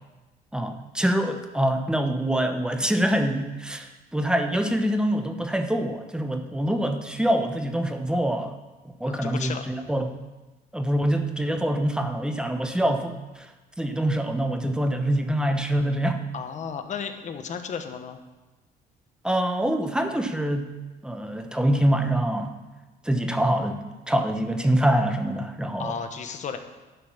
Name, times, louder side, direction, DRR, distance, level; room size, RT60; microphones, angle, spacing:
voice 1, 0.5-8.5 9.0-10.1 10.7-13.5 13.8-16.2 19.2-20.7 21.0-22.6 23.0-23.8 24.1-25.9, right 1 dB, 5° right, 6 dB, 1.0 m, -25 dB
voice 2, 9.0-9.6 16.3-18.2 25.8-26.6, left 6 dB, 45° left, 7 dB, 1.1 m, -33 dB
11.5 x 5.4 x 7.3 m, 1.1 s
cardioid pair, 110°, 17 cm